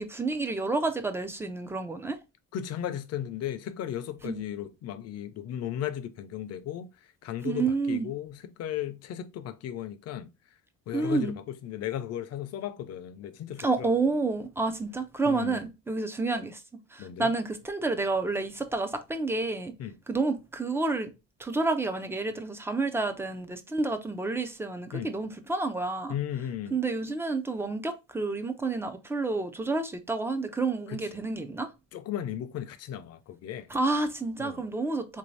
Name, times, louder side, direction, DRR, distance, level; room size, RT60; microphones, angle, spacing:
voice 1, 0.0-2.2 4.2-4.4 7.4-8.1 10.9-11.4 13.6-16.6 16.9-19.7 20.1-21.1 21.4-26.1 26.7-31.7 33.7-35.2, right 3 dB, 10° right, 0.3 m, -29 dB
voice 2, 2.5-6.9 7.2-10.3 10.9-13.9 15.2-15.7 17.0-17.3 19.8-20.0 24.9-25.1 26.1-26.8 30.9-31.1 31.9-33.7 34.4-34.6, left 10 dB, 50° left, 0.5 m, -35 dB
3.7 x 2.7 x 3.1 m
cardioid pair, 155°, 31 cm